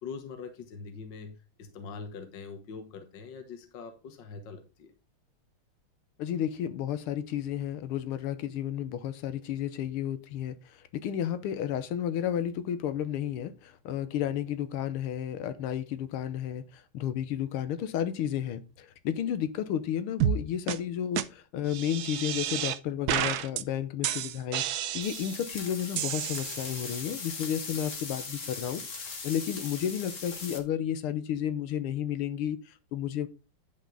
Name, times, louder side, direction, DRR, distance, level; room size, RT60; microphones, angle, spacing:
voice 1, 0.0-4.9, left 5 dB, 60° left, 1.9 m, -43 dB
voice 2, 6.2-33.3, left 10 dB, 85° left, 1.8 m, -32 dB
sound 1, 20.2-20.4 20.7-20.8 21.2-21.3 21.7-22.8 23.1-23.6 24.0-25.4 26.0-26.9, right 11 dB, 75° right, 0.9 m, -30 dB
sound 2, 25.0-30.6, left 4 dB, 40° left, 1.6 m, -39 dB
10.5 x 5.4 x 3.9 m
omnidirectional pair, 2.4 m